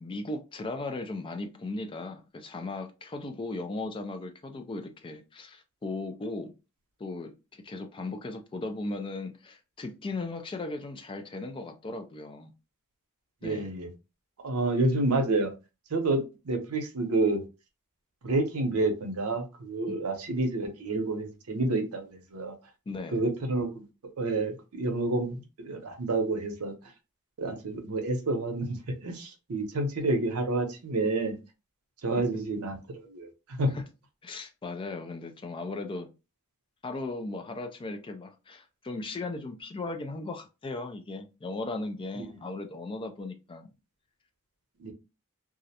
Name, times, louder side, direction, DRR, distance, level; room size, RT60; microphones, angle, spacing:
voice 1, 0.0-6.5 7.0-12.5 13.4-13.7 19.9-20.0 22.9-23.2 33.7-33.9 34.2-36.1 36.8-43.7, left 2 dB, 25° left, 0.3 m, -37 dB
voice 2, 13.4-13.9 14.4-15.5 15.9-17.4 18.2-22.5 23.1-23.8 24.2-26.7 27.4-28.8 29.0-31.4 32.0-33.7 42.2-42.3 44.8-44.9, right 2 dB, 85° right, 0.7 m, -29 dB
2.4 x 2.0 x 2.7 m
head